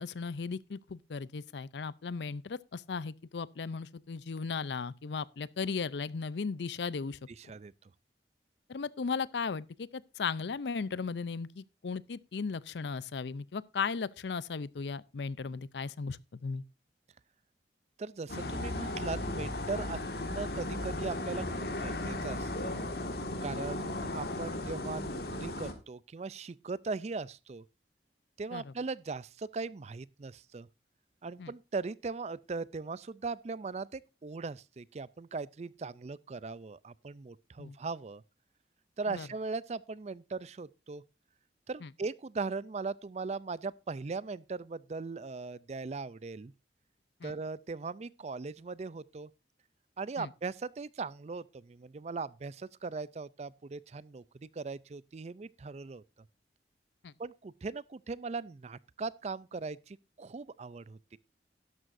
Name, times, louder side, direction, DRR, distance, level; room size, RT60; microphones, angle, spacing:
voice 1, 0.0-7.2 8.7-16.6 28.5-28.6 31.4-31.5 37.6-37.8 39.1-39.3 41.8-41.9 47.2-47.3 50.2-50.3 57.0-57.1, left 5 dB, 80° left, 0.5 m, -36 dB
voice 2, 7.4-7.7 18.0-20.0 20.3-22.7 23.4-27.6 28.4-30.7 31.2-38.2 39.0-41.0 41.7-46.5 47.2-49.3 50.0-56.0 57.2-61.2, right 4 dB, 40° right, 0.4 m, -39 dB
sound 1, 18.3-25.7, left 1 dB, 60° left, 1.8 m, -36 dB
12.5 x 11.0 x 2.6 m
head